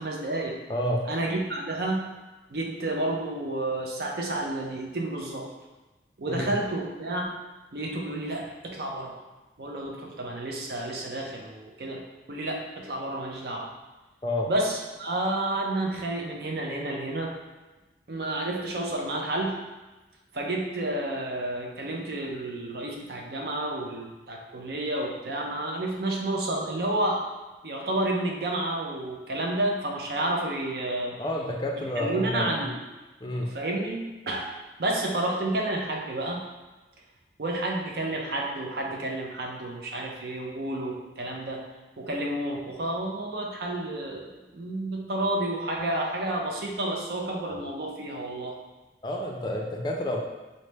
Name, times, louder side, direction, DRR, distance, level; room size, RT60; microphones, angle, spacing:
voice 1, 0.0-0.6 1.1-2.1 2.5-5.5 6.2-7.4 7.7-9.2 9.6-12.0 12.3-13.7 14.5-17.3 18.1-19.6 20.3-27.2 27.6-31.2 31.8-32.8 33.3-34.5 34.8-36.5 37.4-41.6 42.0-48.6, right 1 dB, 60° right, 0 dB, 0.6 m, -30 dB
voice 2, 0.7-1.1 6.3-6.5 14.2-14.5 31.2-32.5 33.2-33.5 49.0-50.2, left 1 dB, 25° left, -1 dB, 0.4 m, -29 dB
4.1 x 2.0 x 3.3 m, 1.1 s
head